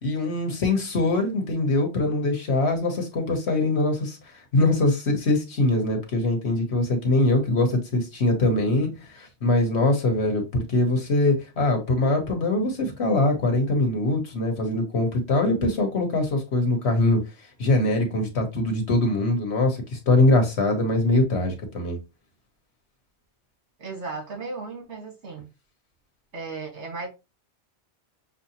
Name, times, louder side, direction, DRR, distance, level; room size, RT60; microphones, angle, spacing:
voice 1, 0.0-4.2 4.5-17.2 17.6-22.0, left 2 dB, 70° left, 1.4 m, -23 dB
voice 2, 23.8-25.5 26.3-27.1, right 3 dB, 75° right, 1.7 m, -35 dB
6.5 x 2.2 x 2.8 m
omnidirectional pair, 1.2 m